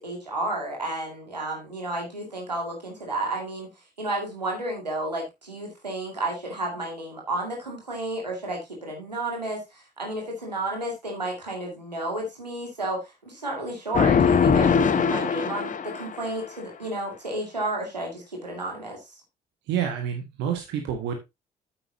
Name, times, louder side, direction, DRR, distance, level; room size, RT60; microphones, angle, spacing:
voice 1, 0.0-3.7 4.0-19.2, right 2 dB, 85° right, 0 dB, 2.3 m, -32 dB
sound 1, 13.9-16.3, left 6 dB, 40° left, 1.1 m, -21 dB
voice 2, 19.7-21.1, right 9 dB, 60° right, 4 dB, 1.7 m, -28 dB
9.0 x 8.7 x 2.7 m, 0.22 s
figure-of-eight pair, 45°, 21 cm